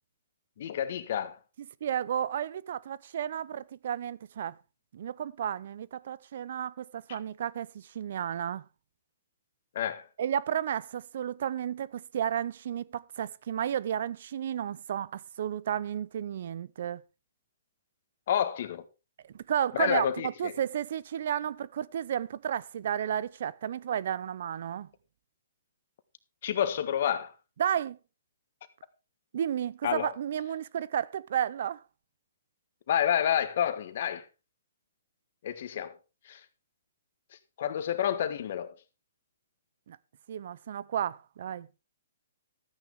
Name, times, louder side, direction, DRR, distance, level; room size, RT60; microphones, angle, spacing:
voice 1, 0.6-1.4 7.1-7.2 9.7-10.1 18.3-18.8 19.7-20.5 26.4-27.3 29.8-30.1 32.9-34.2 35.4-36.0 36.2-36.4 37.6-38.8, left 9 dB, 55° left, 1.5 m, -29 dB
voice 2, 1.8-4.6 4.9-8.6 10.2-17.0 19.2-24.9 27.6-28.0 29.3-31.8 39.9-40.0 40.3-41.7, right 9 dB, 60° right, 0.6 m, -32 dB
13.0 x 9.3 x 3.6 m
hypercardioid pair, 140°, 0 cm